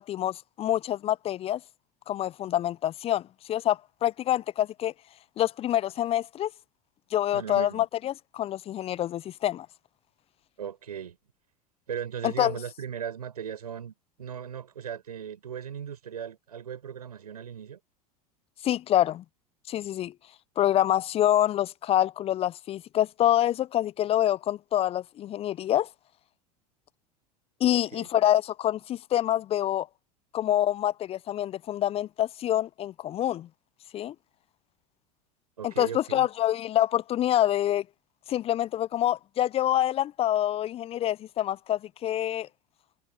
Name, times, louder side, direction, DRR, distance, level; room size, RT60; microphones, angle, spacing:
voice 1, 0.0-1.6 2.1-4.9 5.4-6.5 7.1-9.7 12.2-12.6 18.6-19.2 19.7-20.1 20.6-25.9 27.6-29.9 30.3-33.5 33.9-34.1 35.6-37.8 38.3-42.5, left 12 dB, 30° left, 0.5 m, -26 dB
voice 2, 7.3-7.9 10.6-11.2 11.9-17.8 27.7-28.1 35.6-36.3, right 8 dB, 80° right, 7.0 m, -37 dB
figure-of-eight pair, 80°, 20 cm